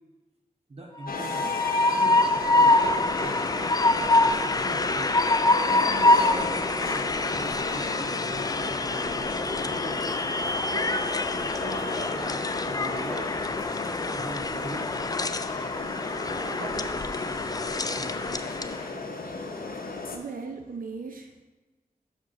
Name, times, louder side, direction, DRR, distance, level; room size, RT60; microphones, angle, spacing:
voice 1, 0.7-2.8 3.1-10.1 10.7-10.9 11.4-13.4 13.8-15.1 16.3-17.5 17.9-18.4 20.2-20.3, right 2 dB, 40° right, 0 dB, 0.8 m, -42 dB
Train, 1.0-18.8, left 2 dB, 25° left, 0.3 m, -25 dB
sound 1, 1.1-20.2, left 3 dB, 80° left, 0.8 m, -35 dB
voice 2, 20.1-21.4, right 4 dB, 70° right, 5 dB, 0.6 m, -38 dB
6.1 x 5.0 x 5.9 m, 1.2 s
wide cardioid pair, 95°, 15 cm